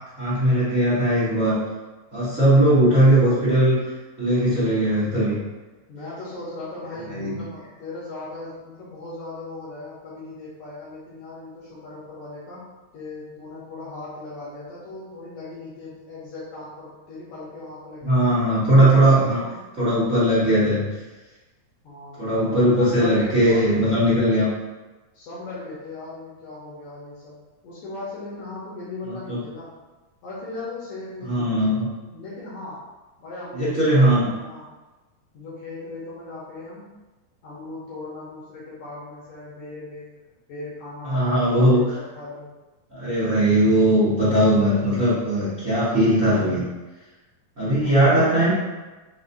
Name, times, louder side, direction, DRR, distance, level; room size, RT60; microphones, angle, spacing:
voice 1, 0.2-1.5 2.1-3.9 4.2-5.4 7.1-7.4 18.0-19.4 19.8-20.9 22.2-24.5 29.0-29.4 31.2-31.9 33.5-34.3 41.0-41.8 42.9-46.6 47.6-48.5, right 1 dB, 85° right, -13 dB, 0.7 m, -19 dB
voice 2, 5.9-12.7 12.9-18.3 18.9-19.7 21.8-24.4 25.1-27.4 27.6-29.7 30.2-31.8 32.1-32.9 33.2-34.7 35.3-36.9 37.4-41.9 42.2-42.5 47.8-48.5, left 2 dB, 70° left, -8 dB, 1.8 m, -38 dB
5.4 x 2.7 x 2.6 m, 1.2 s
omnidirectional pair, 4.2 m